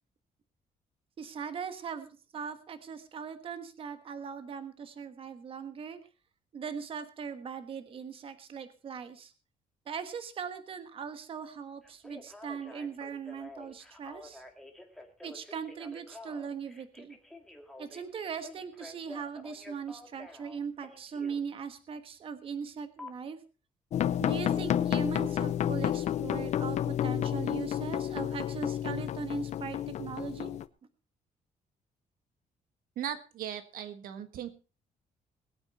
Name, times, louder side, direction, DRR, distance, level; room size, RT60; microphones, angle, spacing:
voice 1, 1.2-6.0 6.5-9.3 9.9-14.4 15.2-17.2 17.8-23.4 24.2-30.5, right 6 dB, 40° right, 10 dB, 1.4 m, -40 dB
Telephone, 11.8-21.4 23.0-23.1, left 2 dB, 5° left, 1.9 m, -49 dB
sound 1, 23.9-30.7, left 10 dB, 50° left, 0.7 m, -30 dB
voice 2, 33.0-34.5, right 10 dB, 80° right, 10 dB, 1.4 m, -38 dB
20.5 x 8.9 x 4.3 m, 0.34 s
cardioid pair, 170°, 14 cm